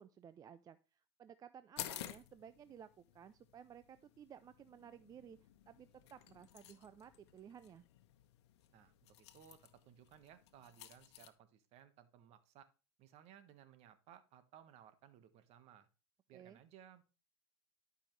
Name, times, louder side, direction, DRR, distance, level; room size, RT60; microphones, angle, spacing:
voice 1, 0.0-5.4 5.7-7.8 16.3-16.6, right 8 dB, 25° right, 14 dB, 0.4 m, -56 dB
sound 1, 1.8-11.3, left 13 dB, 70° left, 1.1 m, -53 dB
voice 2, 8.7-12.7 13.0-15.9 16.3-17.0, right 10 dB, 50° right, 11 dB, 1.4 m, -61 dB
11.5 x 5.6 x 3.2 m, 0.31 s
hypercardioid pair, 105°, 14 cm